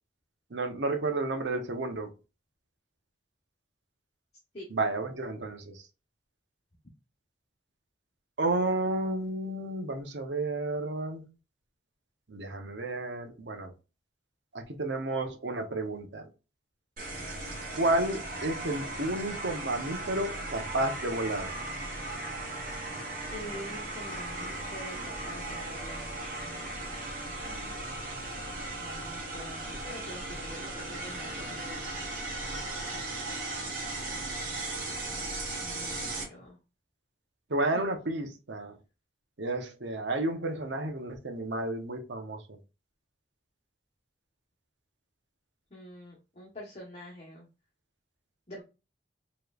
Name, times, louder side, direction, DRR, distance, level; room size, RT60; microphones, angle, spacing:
voice 1, 0.5-2.1 4.7-5.8 8.4-11.2 12.3-13.7 14.5-16.3 17.7-21.5 37.5-38.8 39.4-42.6, right 2 dB, 75° right, 0.9 m, -31 dB
sound 1, 17.0-36.2, right 2 dB, 45° right, 1.4 m, -37 dB
voice 2, 23.3-26.2 27.4-27.8 28.8-31.9 35.6-36.6 37.7-37.8 45.7-47.5 48.5-48.6, left 1 dB, 35° left, 1.2 m, -46 dB
4.9 x 3.1 x 2.4 m
head